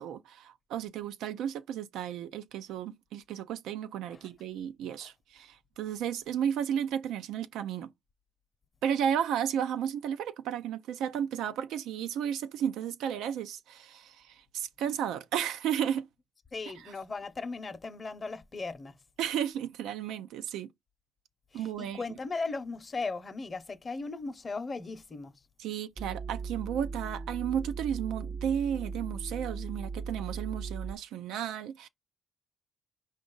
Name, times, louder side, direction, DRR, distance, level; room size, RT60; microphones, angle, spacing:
voice 1, 0.0-7.9 8.8-16.1 16.8-16.9 19.2-20.7 21.5-22.0 25.6-31.9, right 9 dB, 85° right, 0.4 m, -33 dB
voice 2, 16.5-19.0 21.5-25.3, left 3 dB, 35° left, 0.7 m, -37 dB
sound 1, 26.0-31.0, right 4 dB, 30° right, 0.5 m, -38 dB
5.0 x 2.4 x 3.8 m
cardioid pair, 90°, 0 cm